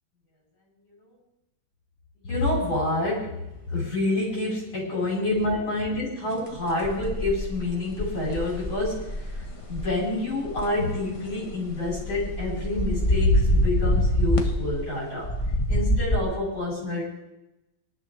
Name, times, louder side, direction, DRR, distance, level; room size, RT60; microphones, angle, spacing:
voice 1, 2.2-3.4 3.7-15.4 15.7-17.0, left 2 dB, 75° left, -6 dB, 6.0 m, -27 dB
sound 1, 6.6-9.9 10.4-10.6 10.9-14.9 15.2-16.2, equal, 20° left, 1.1 m, -26 dB
26.0 x 11.5 x 3.5 m, 0.95 s
omnidirectional pair, 2.2 m